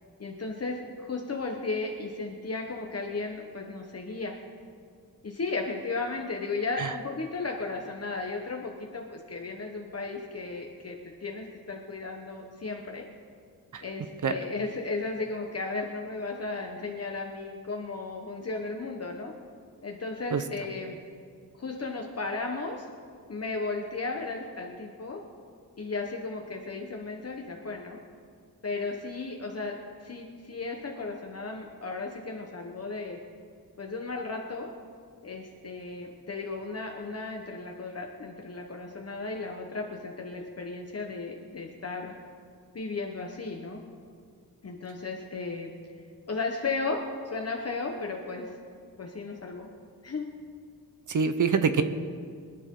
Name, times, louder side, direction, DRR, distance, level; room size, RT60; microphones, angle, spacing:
voice 1, 0.2-4.4 5.2-13.1 13.8-19.3 19.8-21.0 21.5-22.9 23.3-25.2 25.8-28.0 28.6-29.7 30.0-33.2 33.8-34.7 35.2-42.1 42.7-43.8 44.6-45.7 46.3-47.0 47.3-48.4 49.0-49.7 50.0-50.3, left 3 dB, 40° left, 1 dB, 1.2 m, -35 dB
voice 2, 51.1-51.8, right 5 dB, 55° right, 10 dB, 0.8 m, -25 dB
24.5 x 10.0 x 3.8 m, 2.1 s
wide cardioid pair, 145°, 37 cm